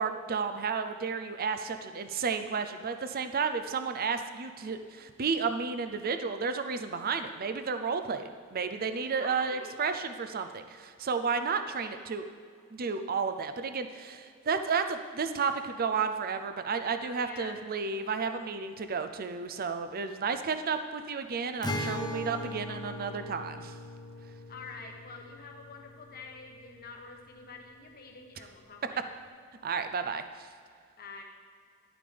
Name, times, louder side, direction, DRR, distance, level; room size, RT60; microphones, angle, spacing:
voice 1, 0.0-12.2 12.7-23.7 29.6-30.5, right 5 dB, 45° right, 9 dB, 0.5 m, -32 dB
voice 2, 9.1-9.7 11.6-11.9 17.0-17.6 24.5-29.1 31.0-31.2, left 4 dB, 45° left, 2 dB, 1.2 m, -47 dB
Acoustic guitar, 21.6-27.1, left 1 dB, 20° left, 0.7 m, -39 dB
11.5 x 8.7 x 3.4 m, 2.1 s
head